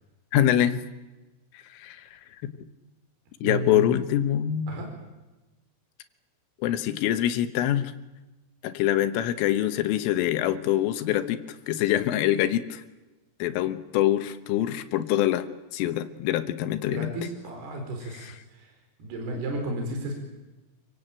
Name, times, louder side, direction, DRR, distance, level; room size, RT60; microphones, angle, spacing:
voice 1, 0.3-0.8 1.5-2.5 3.4-4.7 6.6-7.9 8.6-11.4 11.7-12.8 13.4-15.5 15.7-17.1 18.1-18.3, left 12 dB, 75° left, 10 dB, 3.6 m, -25 dB
voice 2, 3.4-3.9 4.7-4.9 16.9-18.7 19.0-20.1, right 2 dB, 50° right, 2 dB, 6.3 m, -33 dB
27.5 x 24.0 x 9.0 m, 1.1 s
omnidirectional pair, 6.0 m